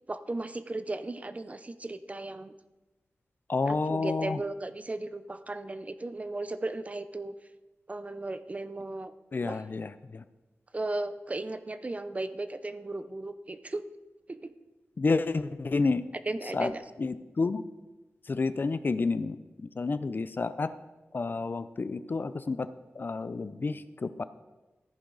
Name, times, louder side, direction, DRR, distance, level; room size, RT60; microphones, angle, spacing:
voice 1, 0.1-2.5 3.7-7.4 7.9-9.1 9.5-9.6 10.7-13.8 14.3-14.5 16.3-16.8, right 2 dB, 30° right, 12 dB, 0.6 m, -36 dB
voice 2, 3.5-4.4 9.3-10.2 15.0-16.0 16.5-16.7 17.0-17.6 18.3-20.7 21.1-22.7 23.0-24.2, left 3 dB, 45° left, 13 dB, 0.5 m, -30 dB
14.0 x 10.5 x 4.0 m, 1.1 s
wide cardioid pair, 110°, 5 cm